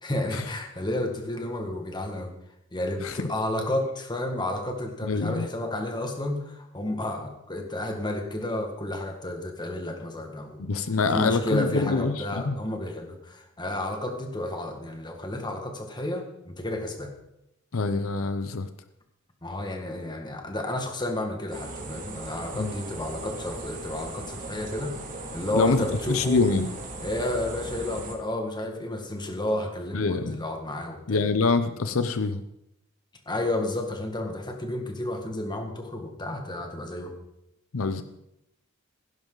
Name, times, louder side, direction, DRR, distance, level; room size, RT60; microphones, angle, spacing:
voice 1, 0.0-2.3 2.7-10.7 11.1-17.1 19.4-25.0 25.3-26.4 27.0-31.2 33.3-37.1, left 1 dB, 20° left, 3 dB, 1.9 m, -31 dB
voice 2, 5.0-5.5 10.6-12.6 17.7-18.7 22.5-22.8 25.5-26.7 29.9-30.4 31.1-32.4 37.7-38.0, left 4 dB, 80° left, 11 dB, 0.7 m, -25 dB
sound 1, 21.5-28.1, right 2 dB, 40° right, 2.5 m, -38 dB
16.5 x 10.5 x 4.0 m, 0.85 s
head